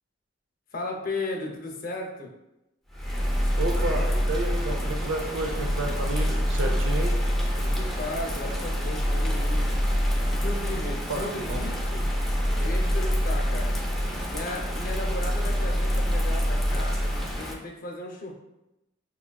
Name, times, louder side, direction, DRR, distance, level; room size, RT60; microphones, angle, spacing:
voice 1, 0.7-2.3 7.6-9.8 10.3-12.1 12.5-13.7 14.2-17.0 17.3-18.3, left 2 dB, 45° left, 1 dB, 0.6 m, -35 dB
Bird vocalization bird call bird song / Rain, 2.9-17.5, equal, ahead, 0.5 m, -26 dB
voice 2, 3.6-7.2 10.8-11.6, right 2 dB, 85° right, 3 dB, 0.5 m, -31 dB
5.4 x 2.4 x 2.2 m, 0.91 s
head